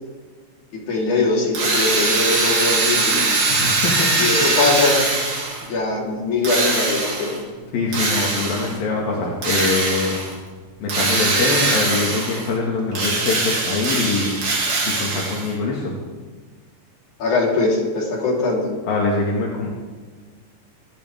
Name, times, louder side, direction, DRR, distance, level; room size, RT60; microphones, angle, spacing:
voice 1, 0.9-3.2 4.2-5.0 5.6-7.4 17.2-18.7, left 3 dB, 55° left, -5 dB, 5.1 m, -21 dB
Drill, 1.6-5.7 6.4-7.4 7.9-8.8 9.4-10.3 10.9-12.5 12.9-15.5, right 3 dB, 55° right, 4.2 m, -21 dB
voice 2, 3.5-4.1 7.7-10.2 10.8-14.3 14.9-15.9 18.9-19.7, left 3 dB, 80° left, -3 dB, 3.8 m, -23 dB
24.5 x 12.0 x 3.6 m, 1.4 s
omnidirectional pair, 4.1 m